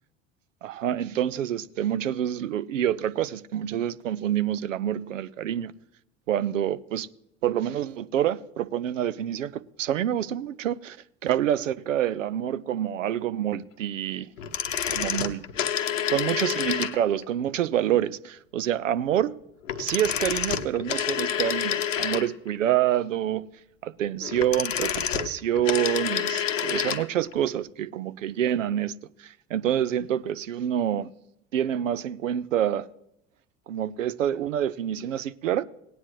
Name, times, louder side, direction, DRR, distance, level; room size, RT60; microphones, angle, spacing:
voice 1, 0.6-5.7 6.3-7.1 7.4-11.0 11.2-14.3 14.9-15.5 16.1-19.3 19.8-23.5 23.8-31.1 31.5-32.9 33.7-35.6, right 11 dB, 80° right, 0.6 m, -27 dB
sound 1, 14.4-17.2 19.6-22.6 24.2-27.1 27.3-27.4, left 9 dB, 80° left, 0.9 m, -28 dB
17.5 x 9.7 x 3.1 m
figure-of-eight pair, 70°, 38 cm